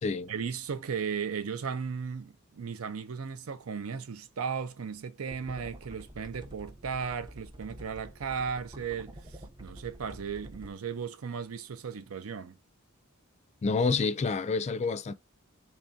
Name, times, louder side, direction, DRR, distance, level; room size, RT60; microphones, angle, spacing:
voice 1, 0.3-12.6, right 6 dB, 80° right, 0.5 m, -36 dB
sound 1, 5.3-10.7, right 1 dB, 20° right, 0.5 m, -47 dB
voice 2, 13.6-15.1, left 4 dB, 30° left, 0.3 m, -28 dB
3.4 x 3.0 x 2.6 m
head